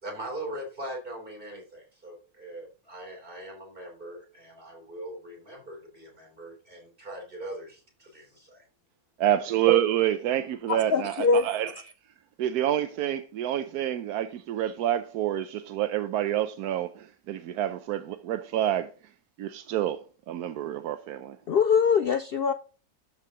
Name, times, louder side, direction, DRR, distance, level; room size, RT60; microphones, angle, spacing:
voice 1, 0.0-8.6, right 1 dB, 35° right, 3.8 m, -41 dB
voice 2, 9.2-11.7 12.4-18.9 19.4-21.4, right 11 dB, 85° right, 1.2 m, -28 dB
voice 3, 10.7-11.9 21.5-22.5, left 5 dB, 70° left, 0.5 m, -24 dB
12.5 x 4.9 x 3.7 m
omnidirectional pair, 1.6 m